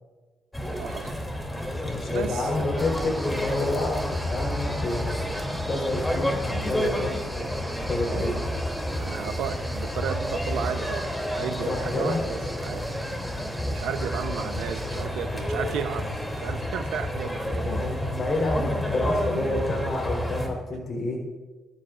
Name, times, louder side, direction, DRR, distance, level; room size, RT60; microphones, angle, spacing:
sound 1, 0.5-20.5, left 1 dB, 10° left, 2.9 m, -30 dB
voice 1, 0.8-1.1 2.1-2.8 8.0-8.4 8.9-12.9 13.6-17.8, right 8 dB, 85° right, 8 dB, 0.8 m, -34 dB
voice 2, 1.8-5.3 5.7-7.3 7.9-8.4 11.7-12.2 17.6-21.2, left 2 dB, 40° left, -1 dB, 3.9 m, -29 dB
sound 2, 2.8-15.0, equal, 5° right, 1.7 m, -37 dB
23.0 x 12.5 x 2.5 m, 1.3 s
cardioid pair, 90°, 0 cm